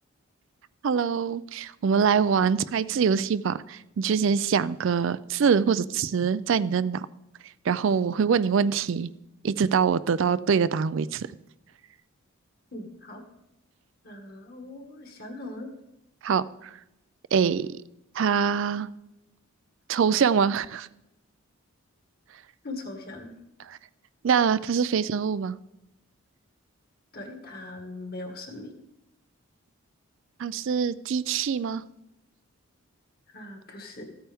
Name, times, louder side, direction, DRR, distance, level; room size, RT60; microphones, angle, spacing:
voice 1, 0.8-7.1 7.4-9.1 9.4-11.3 16.2-16.8 17.3-17.7 18.1-18.9 19.9-20.9 22.3-22.4 23.6-23.8 24.2-25.6 30.4-31.8, right 6 dB, 60° right, 16 dB, 0.3 m, -24 dB
voice 2, 12.7-13.2 14.0-15.7 22.6-23.3 27.1-28.7 33.3-34.0, left 2 dB, 45° left, 3 dB, 1.8 m, -40 dB
14.5 x 8.8 x 3.5 m, 0.86 s
head